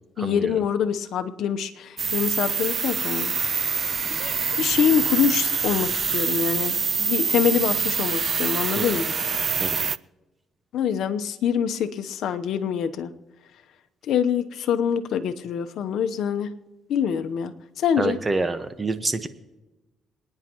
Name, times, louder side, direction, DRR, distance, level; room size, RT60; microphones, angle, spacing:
voice 1, 0.2-3.3 4.1-9.1 10.7-13.1 14.1-16.5 16.9-18.2, left 8 dB, 75° left, 8 dB, 0.9 m, -25 dB
sound 1, 2.0-10.0, right 6 dB, 45° right, 0.4 m, -25 dB
voice 2, 18.0-19.3, right 3 dB, 25° right, 10 dB, 1.2 m, -26 dB
27.5 x 9.8 x 3.0 m, 1.1 s
cardioid pair, 90°, 0 cm